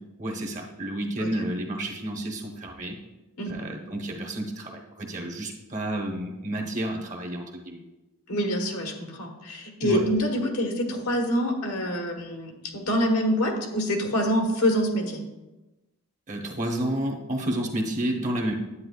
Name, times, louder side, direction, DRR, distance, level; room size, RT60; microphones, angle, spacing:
voice 1, 0.2-3.0 3.5-7.8 9.8-10.0 16.3-18.5, right 1 dB, 35° right, 1 dB, 1.0 m, -30 dB
voice 2, 3.4-3.7 8.3-15.2, equal, 80° left, 2 dB, 1.3 m, -26 dB
9.7 x 8.8 x 2.4 m, 1.0 s
head